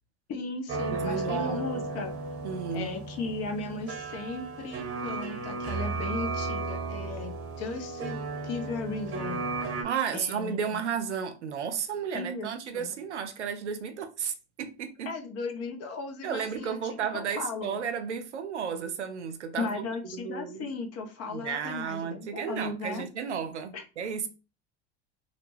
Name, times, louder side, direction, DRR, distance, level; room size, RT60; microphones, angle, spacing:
voice 1, 0.3-2.1 2.7-8.2 8.4-9.5 10.1-10.8 12.1-12.5 12.7-12.9 15.0-17.8 19.6-23.0 23.7-23.8, left 3 dB, 50° left, 0.8 m, -36 dB
sound 1, 0.7-9.8, right 3 dB, 40° right, 1.0 m, -34 dB
voice 2, 0.9-2.0 2.4-2.9 9.8-15.2 16.2-19.7 20.1-20.7 21.3-24.3, right 7 dB, 90° right, 0.5 m, -33 dB
2.4 x 2.1 x 3.1 m
hypercardioid pair, 70°, 33 cm